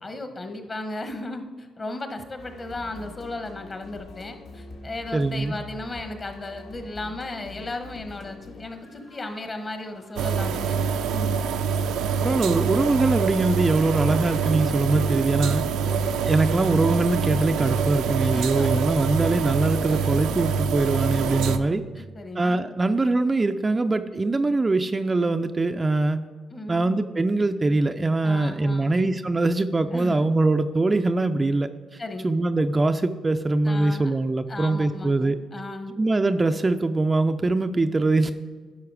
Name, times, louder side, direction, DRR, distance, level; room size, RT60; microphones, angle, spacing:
voice 1, 0.0-11.4 15.8-16.2 18.3-19.0 19.9-20.1 22.0-22.7 26.5-27.0 28.2-29.1 29.9-30.3 32.0-32.2 33.6-34.1 34.5-35.9, left 2 dB, 35° left, 6 dB, 1.2 m, -36 dB
sound 1, 2.4-15.4, left 3 dB, 65° left, 1.8 m, -46 dB
voice 2, 5.1-5.6 12.2-15.7 16.2-22.0 22.4-26.2 26.7-35.4 36.0-38.3, right 2 dB, 25° right, 8 dB, 0.4 m, -23 dB
sound 2, 10.2-21.6, right 6 dB, 85° right, 0.5 m, -25 dB
10.5 x 5.7 x 4.8 m, 1.5 s
cardioid pair, 90°, 0 cm